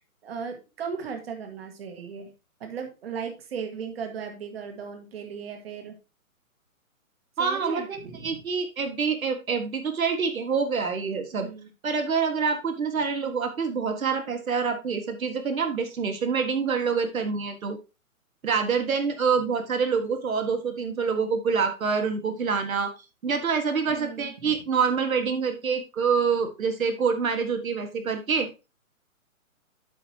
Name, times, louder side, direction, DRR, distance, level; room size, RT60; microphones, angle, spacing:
voice 1, 0.2-2.3 2.6-6.0 7.4-8.4 11.4-11.7 23.9-24.6, right 6 dB, 45° right, 5 dB, 1.8 m, -36 dB
voice 2, 7.4-8.0 8.2-11.5 11.8-17.8 18.4-22.9 23.2-28.5, right 5 dB, 70° right, 6 dB, 1.8 m, -26 dB
13.5 x 4.8 x 2.9 m, 0.28 s
hypercardioid pair, 160°, 43 cm